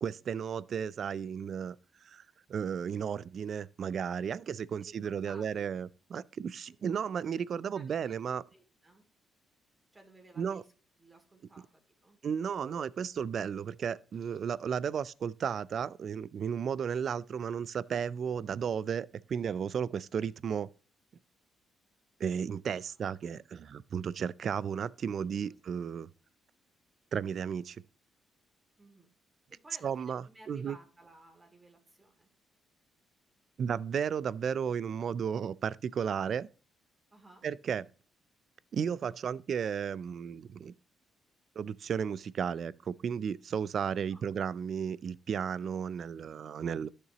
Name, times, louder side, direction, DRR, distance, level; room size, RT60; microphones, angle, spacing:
voice 1, 0.0-1.8 2.0-2.2 2.5-8.4 10.4-10.6 12.2-20.7 22.2-26.1 27.1-27.8 29.8-30.8 33.6-36.5 37.4-37.8 38.7-40.7 41.6-46.9, right 7 dB, 55° right, 0.3 m, -34 dB
voice 2, 4.8-5.7 7.7-9.1 9.9-10.7 11.0-11.7 12.0-12.2 23.2-23.4 25.2-25.6 28.8-29.1 29.5-32.3 37.1-37.4 44.1-44.3, right 2 dB, 20° right, 2.3 m, -57 dB
12.0 x 6.7 x 2.9 m
cardioid pair, 90°, 0 cm